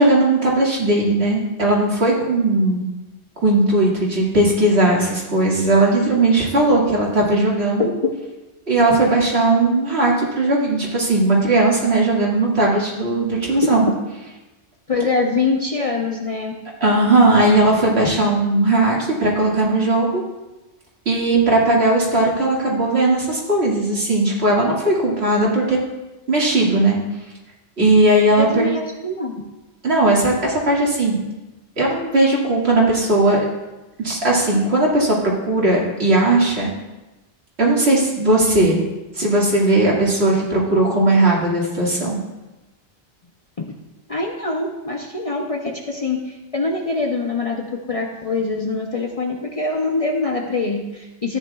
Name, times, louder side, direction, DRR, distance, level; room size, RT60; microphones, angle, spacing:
voice 1, 0.0-2.8 3.4-7.8 8.7-13.9 16.8-20.2 21.1-25.8 26.3-27.0 27.8-28.7 29.8-31.2 31.8-33.4 34.0-36.7 37.6-38.8 39.2-42.2, right 2 dB, 65° right, -4 dB, 2.3 m, -17 dB
voice 2, 7.8-8.1 9.0-9.1 13.6-13.8 14.9-16.5 28.4-29.4 43.6-43.8 44.1-51.4, left 3 dB, 35° left, 1 dB, 0.7 m, -24 dB
14.0 x 9.2 x 2.4 m, 1.1 s
omnidirectional pair, 1.2 m